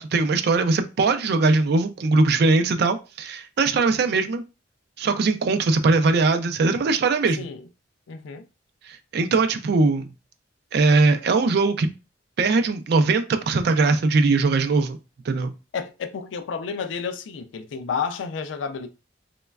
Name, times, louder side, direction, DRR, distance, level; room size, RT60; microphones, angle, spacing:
voice 1, 0.0-4.4 5.0-7.5 8.9-10.1 10.7-11.9 12.4-15.0 15.3-15.5, right 3 dB, 60° right, 0.4 m, -20 dB
voice 2, 8.1-8.4 15.7-18.9, left 6 dB, 85° left, 0.4 m, -31 dB
3.0 x 2.2 x 2.3 m
head